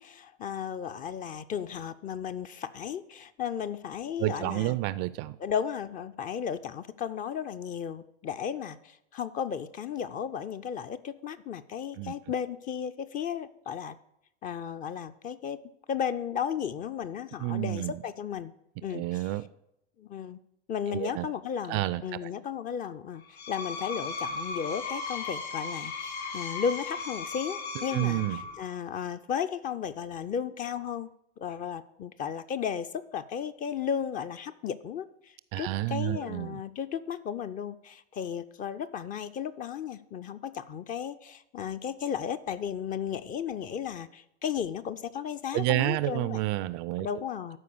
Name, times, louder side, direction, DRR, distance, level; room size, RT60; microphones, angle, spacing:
voice 1, 0.0-4.8 5.4-14.0 14.4-15.6 15.9-18.5 18.8-19.2 20.0-20.4 20.7-23.2 23.5-46.4 47.0-47.6, left 8 dB, 25° left, 12 dB, 0.4 m, -34 dB
voice 2, 4.2-5.4 12.0-12.1 17.4-18.0 18.9-19.4 20.9-21.3 21.7-22.3 27.8-28.5 35.5-36.6 45.5-47.1, right 17 dB, 35° right, 17 dB, 0.4 m, -30 dB
Screech, 23.2-28.7, left 4 dB, 70° left, 2.9 m, -36 dB
12.5 x 4.8 x 6.6 m, 0.82 s
figure-of-eight pair, 85°, 33 cm